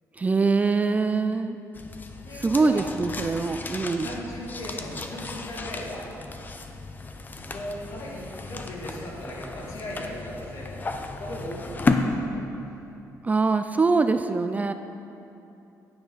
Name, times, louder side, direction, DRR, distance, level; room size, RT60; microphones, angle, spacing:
voice 1, 0.2-1.6 2.3-4.1 13.2-14.7, right 4 dB, 25° right, 9 dB, 0.4 m, -23 dB
sound 1, 1.7-12.0, left 4 dB, 30° left, 0.7 m, -34 dB
voice 2, 2.2-2.9 4.0-6.1 7.5-10.9 11.2-12.4, left 1 dB, 60° left, -4 dB, 2.5 m, -37 dB
10.0 x 9.7 x 4.0 m, 2.8 s
cardioid pair, 100°, 7 cm